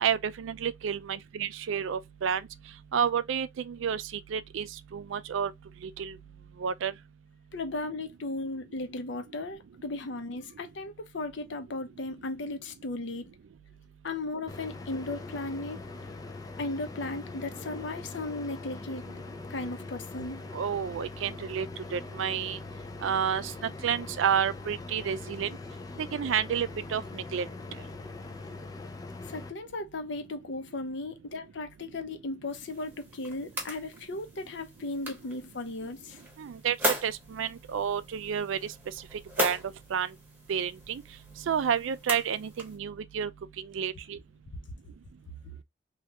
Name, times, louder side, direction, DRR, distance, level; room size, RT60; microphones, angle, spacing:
voice 1, 0.0-2.4 2.9-4.0 4.3-4.7 4.9-5.5 6.0-6.1 6.6-6.9 20.5-21.7 21.9-22.6 23.0-25.5 26.1-27.5 36.4-36.8 37.0-38.6 39.4-39.6 39.9-40.1 40.5-41.0 41.5-43.3 43.7-44.2, right 7 dB, 70° right, 0.3 m, -30 dB
voice 2, 7.5-13.3 14.0-15.8 16.6-19.1 19.5-20.4 29.3-36.2, left 2 dB, 60° left, 0.6 m, -36 dB
sound 1, 14.5-29.5, left 3 dB, 20° left, 0.3 m, -42 dB
sound 2, 32.5-42.8, equal, 10° right, 0.9 m, -38 dB
3.3 x 2.4 x 2.8 m
head